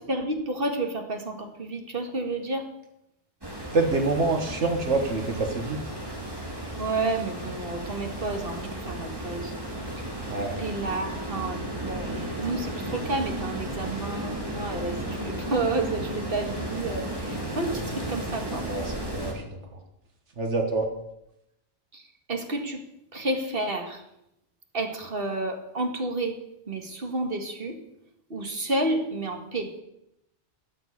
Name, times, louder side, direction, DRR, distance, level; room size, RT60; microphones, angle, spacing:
voice 1, 0.1-2.6 6.8-9.5 10.6-18.6 21.9-22.0 22.3-22.8 23.1-24.0 24.7-26.4 26.7-27.7 28.3-29.7, right 2 dB, 55° right, 4 dB, 2.1 m, -30 dB
sound 1, 3.4-19.3, right 1 dB, 20° right, 2.9 m, -34 dB
voice 2, 3.7-5.8 10.3-10.5 18.7-19.6 20.4-20.9, right 3 dB, 90° right, 3 dB, 1.9 m, -26 dB
14.5 x 7.0 x 8.6 m, 0.83 s
omnidirectional pair, 1.2 m